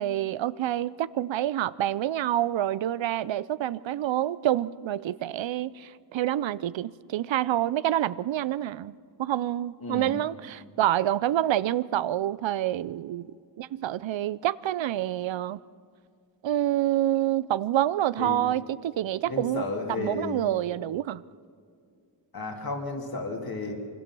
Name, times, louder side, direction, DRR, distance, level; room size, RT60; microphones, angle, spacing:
voice 1, 0.0-15.6 16.4-19.6 20.0-21.2, right 12 dB, 90° right, 18 dB, 0.6 m, -27 dB
voice 2, 9.8-10.2 18.2-18.4 19.2-20.4 22.3-23.7, left 3 dB, 55° left, 2 dB, 2.7 m, -33 dB
25.0 x 24.0 x 6.1 m, 2.2 s
wide cardioid pair, 140°, 44 cm